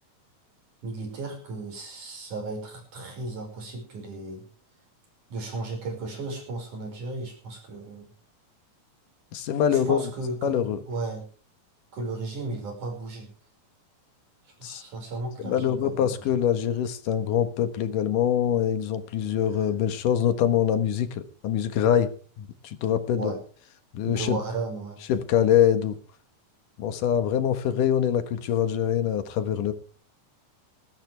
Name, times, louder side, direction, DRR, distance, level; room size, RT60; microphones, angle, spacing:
voice 1, 0.8-4.5 5.3-8.1 9.7-11.3 11.9-13.3 14.5-16.3 23.2-23.4 24.1-25.0, right 3 dB, 70° right, 3 dB, 7.2 m, -35 dB
voice 2, 9.3-10.0 10.4-10.8 14.6-14.8 15.4-22.1 22.4-23.3 23.9-24.4 25.1-26.0 26.8-29.7, left 9 dB, 90° left, 10 dB, 3.0 m, -24 dB
20.0 x 14.5 x 3.5 m, 0.42 s
omnidirectional pair, 3.6 m